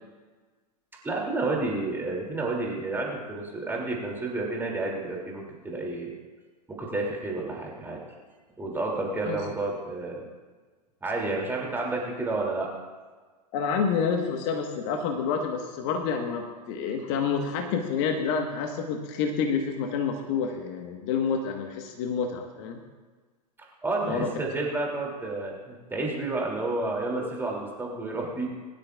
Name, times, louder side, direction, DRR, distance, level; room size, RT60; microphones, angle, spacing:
voice 1, 1.0-6.1 6.7-8.0 8.6-10.2 11.0-12.7 23.8-28.5, right 2 dB, 10° right, -2 dB, 2.8 m, -30 dB
voice 2, 13.5-22.8 24.0-24.3, left 6 dB, 45° left, 3 dB, 1.4 m, -28 dB
21.5 x 12.0 x 2.4 m, 1.4 s
figure-of-eight pair, 95°, 21 cm